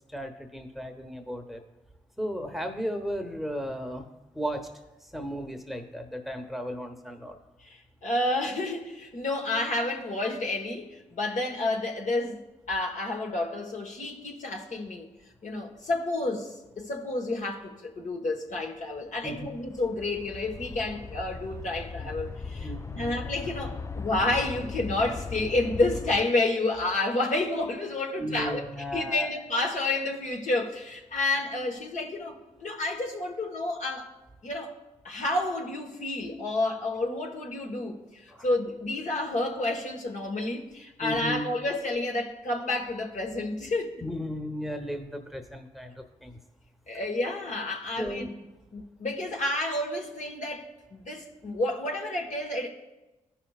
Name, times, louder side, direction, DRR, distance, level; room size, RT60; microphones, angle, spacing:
voice 1, 0.1-1.6 2.2-4.0 4.3-4.7 5.1-7.4 19.2-19.5 22.0-22.1 22.6-23.1 28.2-29.3 38.3-38.5 41.0-41.4 44.0-46.4 48.0-48.3, equal, ahead, 1.1 m, -35 dB
voice 2, 7.6-12.4 12.7-15.1 15.4-22.7 23.0-28.6 28.9-34.1 34.4-34.7 35.0-44.0 46.9-48.3 48.7-52.7, left 2 dB, 60° left, 1.4 m, -30 dB
sound 1, 19.0-26.3, left 5 dB, 20° left, 0.4 m, -38 dB
13.5 x 5.7 x 2.4 m
supercardioid pair, 40°, 14 cm